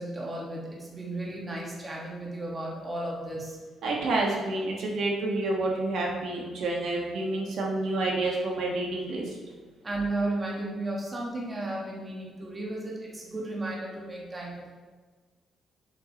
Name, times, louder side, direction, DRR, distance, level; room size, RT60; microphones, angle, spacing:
voice 1, 0.0-3.6 9.8-14.7, right 2 dB, 20° right, -3 dB, 1.4 m, -34 dB
voice 2, 3.8-9.4, right 2 dB, 70° right, -1 dB, 1.3 m, -29 dB
7.9 x 7.3 x 2.9 m, 1.4 s
cardioid pair, 145°, 0 cm